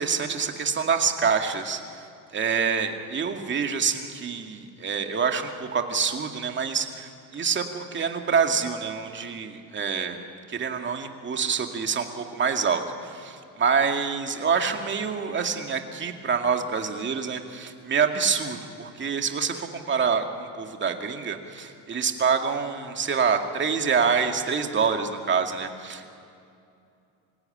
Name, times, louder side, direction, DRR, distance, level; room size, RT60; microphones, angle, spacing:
voice 1, 0.0-2.0 2.3-26.1, right 6 dB, 30° right, 5 dB, 2.2 m, -26 dB
26.0 x 16.5 x 10.0 m, 2.5 s
cardioid pair, 125°, 35 cm